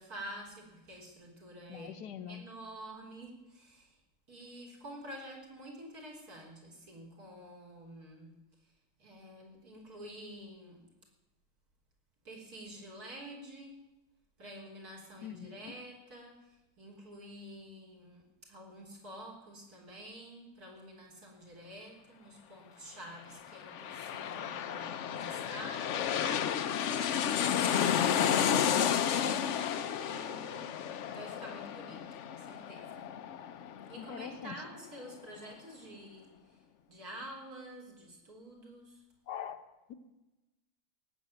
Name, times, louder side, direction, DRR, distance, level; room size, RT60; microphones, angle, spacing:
voice 1, 0.0-1.9 2.3-4.0 4.3-8.3 9.0-10.9 12.2-13.9 14.4-26.9 27.4-30.8 31.1-33.1 33.9-36.6 36.9-39.0, right 1 dB, 60° right, -1 dB, 4.0 m, -49 dB
voice 2, 1.7-2.4 15.2-15.7 27.5-27.9 33.9-34.6 39.3-39.6 39.9-40.0, left 8 dB, 75° left, 9 dB, 1.5 m, -43 dB
sound 1, 23.4-34.7 35.1-35.2, left 9 dB, 60° left, 0.8 m, -32 dB
17.5 x 7.3 x 9.0 m, 1.0 s
omnidirectional pair, 1.8 m